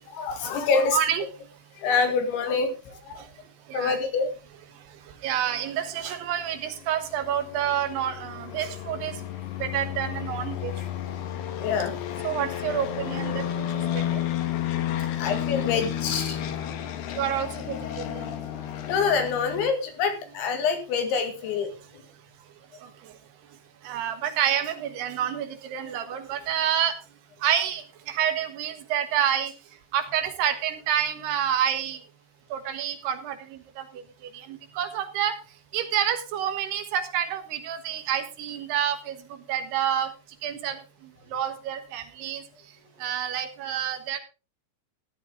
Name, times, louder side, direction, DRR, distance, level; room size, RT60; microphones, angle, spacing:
voice 1, 0.1-1.0 1.8-3.2 3.7-4.3 11.5-11.9 15.2-16.4 16.9-17.0 18.8-21.7, left 5 dB, 90° left, 5 dB, 4.4 m, -26 dB
voice 2, 0.9-1.2 3.1-3.3 3.7-4.0 4.8-9.3 9.6-10.7 12.2-14.2 17.1-18.4 22.8-23.1 23.8-27.0 27.4-29.5 29.9-32.0 32.5-35.4 35.7-40.1 40.4-42.4 43.0-44.2, right 9 dB, 70° right, 8 dB, 3.1 m, -29 dB
sound 1, 6.4-19.7, left 11 dB, 70° left, 3.0 m, -32 dB
13.5 x 11.0 x 3.6 m, 0.30 s
omnidirectional pair, 5.2 m